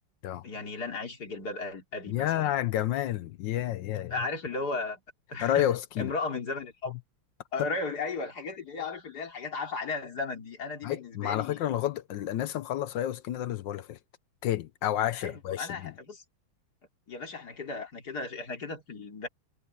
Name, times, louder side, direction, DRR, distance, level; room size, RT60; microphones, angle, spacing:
voice 1, 0.4-2.5 4.1-5.0 5.3-5.7 6.0-6.9 7.5-11.6 15.2-16.2 17.1-19.3, left 3 dB, 50° left, 3.6 m, -35 dB
voice 2, 2.1-4.1 5.4-6.1 6.9-7.0 7.6-7.7 10.8-14.0 14.4-15.9, left 12 dB, 70° left, 1.3 m, -30 dB
omnidirectional pair, 2.3 m